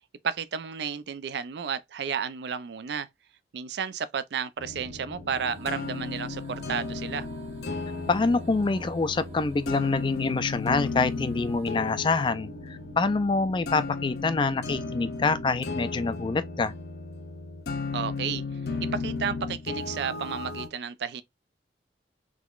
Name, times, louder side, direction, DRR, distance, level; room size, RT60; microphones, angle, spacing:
voice 1, 0.2-3.1 3.5-7.3 17.9-18.4 18.9-21.2, right 6 dB, 65° right, 0.4 m, -32 dB
sound 1, 4.6-20.7, left 4 dB, 60° left, 0.7 m, -35 dB
sound 2, 4.6-15.6, equal, 15° right, 0.7 m, -48 dB
sound 3, 5.3-12.3, right 2 dB, 35° right, 1.2 m, -50 dB
voice 2, 8.1-16.7, left 3 dB, 25° left, 0.3 m, -26 dB
3.8 x 2.9 x 2.3 m
head